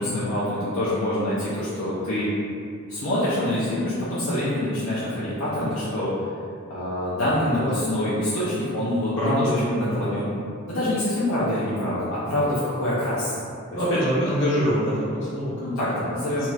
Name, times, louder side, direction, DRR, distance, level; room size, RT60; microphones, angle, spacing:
voice 1, 0.0-2.3 2.9-6.1 6.7-10.3 10.7-13.4 15.6-16.5, left 1 dB, 80° left, -10 dB, 0.6 m, -25 dB
voice 2, 9.2-10.2 13.7-16.0 16.4-16.5, equal, 60° left, -8 dB, 1.0 m, -25 dB
2.7 x 2.3 x 3.2 m, 2.4 s
head